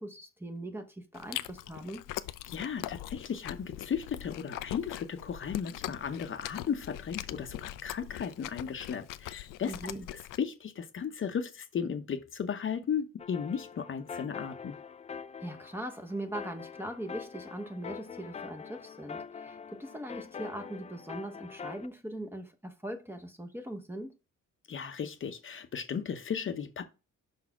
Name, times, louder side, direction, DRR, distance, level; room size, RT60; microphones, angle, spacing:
voice 1, 0.0-2.0 9.6-10.1 15.4-24.1, right 1 dB, 5° right, 0.8 m, -40 dB
Chewing mastication, 1.1-10.4, left 14 dB, 85° left, 0.5 m, -41 dB
voice 2, 2.5-9.7 10.4-14.7 24.7-26.8, left 7 dB, 40° left, 0.8 m, -35 dB
sound 1, 13.2-21.9, left 6 dB, 20° left, 0.4 m, -44 dB
5.5 x 4.1 x 5.8 m
cardioid pair, 115°, 31 cm